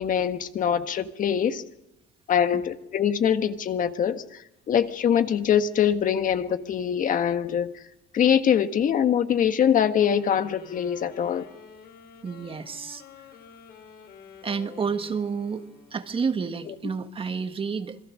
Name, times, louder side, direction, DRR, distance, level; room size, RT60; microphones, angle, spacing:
voice 1, 0.0-1.6 2.3-4.4 4.7-7.7 8.1-11.4, left 8 dB, 50° left, 1.6 m, -23 dB
sound 1, 10.0-16.4, left 7 dB, 75° left, 5.0 m, -48 dB
voice 2, 12.2-13.4 14.4-18.0, right 5 dB, 30° right, 1.6 m, -30 dB
27.5 x 22.0 x 6.4 m
cardioid pair, 110°, 17 cm